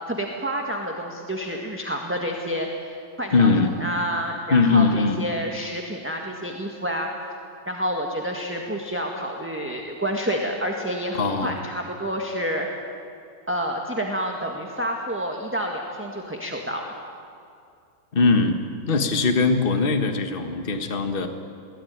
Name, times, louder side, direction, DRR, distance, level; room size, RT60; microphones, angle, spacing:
voice 1, 0.1-3.5 3.8-7.1 7.6-12.7 13.5-16.8, equal, 5° right, 0 dB, 1.6 m, -29 dB
voice 2, 3.3-3.7 4.5-5.2 11.1-11.5 18.1-18.6 18.9-21.3, left 4 dB, 30° left, 6 dB, 1.5 m, -20 dB
22.5 x 17.5 x 9.5 m, 2.4 s
omnidirectional pair, 2.2 m